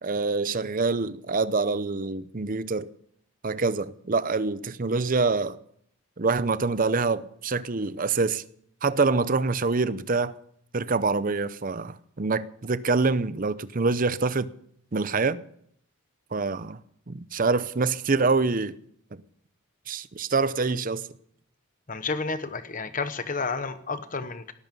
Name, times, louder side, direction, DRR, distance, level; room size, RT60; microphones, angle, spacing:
voice 1, 0.0-2.9 3.4-5.6 6.2-8.4 8.8-10.3 10.7-14.5 14.9-15.4 16.3-16.8 17.1-18.8 19.1-19.2 19.9-21.0, right 4 dB, 40° right, 0.6 m, -25 dB
voice 2, 21.9-24.5, left 4 dB, 40° left, 1.1 m, -31 dB
18.5 x 13.5 x 5.4 m
head